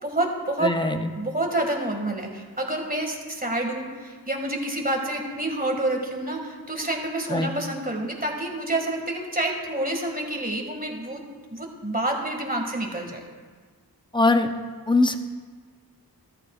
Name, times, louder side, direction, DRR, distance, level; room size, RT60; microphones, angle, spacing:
voice 1, 0.0-0.7 1.2-11.2 11.5-13.2, right 1 dB, 20° right, 1 dB, 2.0 m, -28 dB
voice 2, 0.6-1.1 7.3-7.5 14.1-14.5 14.9-15.2, left 2 dB, 10° left, 7 dB, 0.8 m, -21 dB
13.5 x 12.0 x 2.5 m, 1.6 s
cardioid pair, 40°, 38 cm